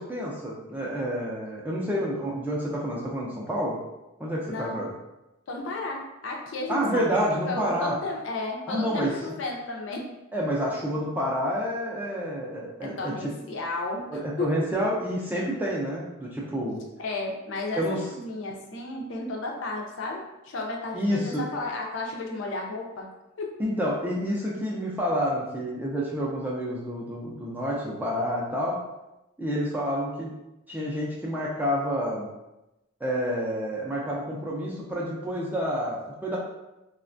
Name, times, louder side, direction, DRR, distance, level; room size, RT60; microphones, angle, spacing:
voice 1, 0.0-3.8 4.2-4.9 6.7-8.0 8.7-9.1 10.3-13.3 14.1-16.8 17.8-18.1 20.9-21.5 23.6-28.8 29.4-30.3 30.7-32.3 33.0-36.4, equal, 10° right, -4 dB, 0.3 m, -29 dB
voice 2, 4.5-4.8 5.5-7.1 7.4-10.1 12.8-14.7 17.0-23.1 23.4-23.5, left 3 dB, 60° left, 0 dB, 0.4 m, -33 dB
3.2 x 2.2 x 2.5 m, 0.96 s
head